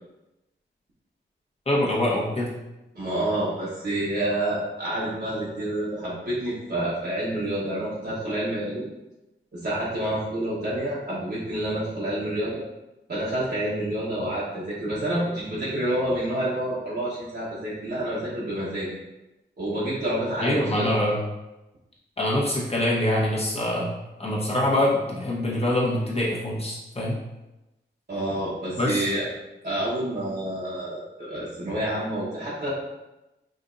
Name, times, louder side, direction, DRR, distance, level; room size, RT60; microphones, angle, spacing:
voice 1, 1.7-2.5 20.4-21.2 22.2-23.9 24.2-27.1 28.8-29.1, left 1 dB, 30° left, -5 dB, 1.2 m, -24 dB
voice 2, 2.9-8.9 9.5-12.6 13.1-18.9 19.6-20.9 28.1-29.3 29.6-32.7, right 1 dB, 55° right, -9 dB, 1.2 m, -28 dB
5.2 x 2.7 x 2.6 m, 0.98 s
wide cardioid pair, 70°, 20 cm